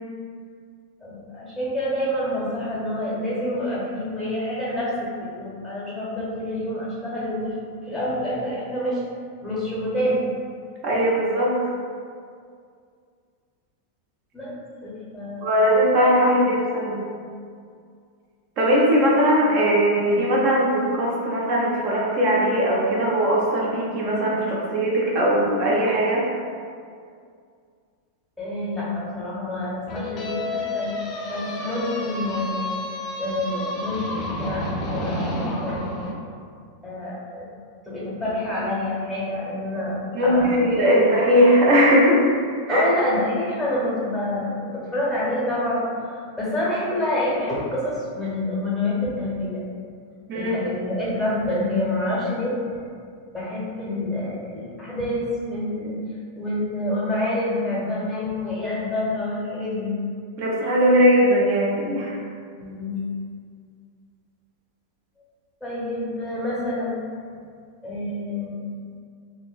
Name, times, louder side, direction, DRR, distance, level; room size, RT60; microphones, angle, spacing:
voice 1, 1.0-7.6 7.9-9.0 9.4-10.2 14.3-15.7 28.4-32.6 33.2-35.9 36.8-37.4 37.9-40.7 42.7-45.8 46.4-49.6 50.3-52.5 53.3-56.0 56.4-59.9 62.6-63.0 65.6-66.9 67.8-68.6, left 1 dB, ahead, -9 dB, 0.9 m, -27 dB
voice 2, 10.8-11.5 15.4-17.0 18.6-26.2 40.1-42.2 42.7-42.8 50.3-50.5 60.4-62.2, equal, 40° right, -4 dB, 0.6 m, -19 dB
sound 1, 29.9-36.1, left 1 dB, 35° left, 0.5 m, -30 dB
3.0 x 2.1 x 2.4 m, 2.2 s
figure-of-eight pair, 90°, 0 cm